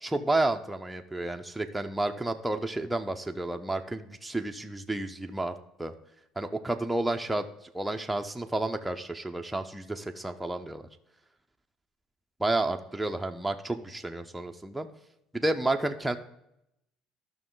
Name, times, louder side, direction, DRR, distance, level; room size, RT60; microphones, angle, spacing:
voice 1, 0.0-5.5 5.8-5.9 6.4-10.9 12.4-14.9 15.3-16.2, right 2 dB, 5° right, 4 dB, 0.5 m, -31 dB
13.0 x 6.0 x 3.8 m, 0.82 s
cardioid pair, 135°, 0 cm